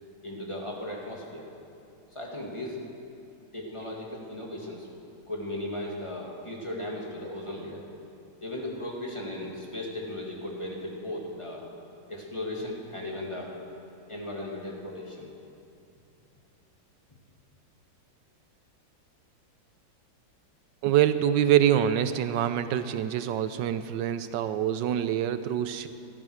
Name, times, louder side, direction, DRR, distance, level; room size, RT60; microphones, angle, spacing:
voice 1, 0.2-1.5 2.1-2.8 3.5-4.9 5.3-7.8 8.4-11.6 12.1-13.5 14.1-15.3, left 1 dB, 15° left, -2 dB, 2.1 m, -36 dB
voice 2, 20.8-25.9, right 10 dB, 75° right, 11 dB, 1.2 m, -25 dB
15.5 x 12.5 x 6.4 m, 2.8 s
omnidirectional pair, 2.1 m